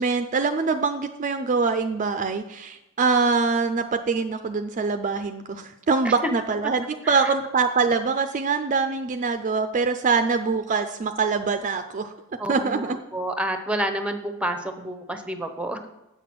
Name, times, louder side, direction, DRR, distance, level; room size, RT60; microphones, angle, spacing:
voice 1, 0.0-12.1 12.5-13.0, right 4 dB, 40° right, 8 dB, 0.4 m, -24 dB
voice 2, 12.4-15.9, right 1 dB, 5° right, 7 dB, 0.8 m, -29 dB
7.8 x 5.9 x 6.1 m, 0.92 s
head